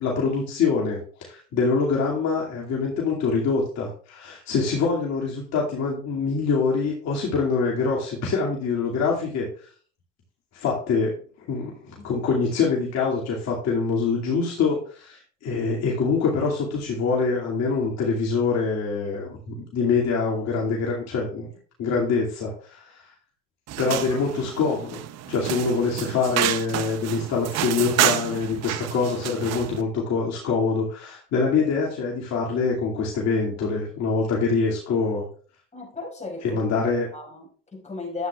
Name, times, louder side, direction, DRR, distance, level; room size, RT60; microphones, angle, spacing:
voice 1, 0.0-9.5 10.5-11.1 11.5-21.5 21.8-23.0 23.8-35.3 36.4-37.1, left 4 dB, 60° left, 2.5 m, -25 dB
sound 1, 23.7-29.8, right 13 dB, 55° right, 0.8 m, -29 dB
voice 2, 35.7-36.7 37.1-38.3, left 3 dB, 25° left, 5.1 m, -35 dB
12.0 x 8.3 x 2.4 m
supercardioid pair, 85°, 30 cm